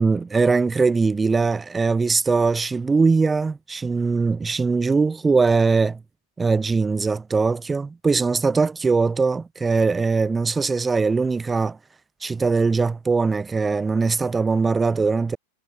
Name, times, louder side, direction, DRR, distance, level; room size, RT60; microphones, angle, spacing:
voice 1, 0.0-6.0 6.4-11.8 12.2-15.4, right 4 dB, 15° right, 0.5 m, -21 dB
figure-of-eight pair, 90°, 0 cm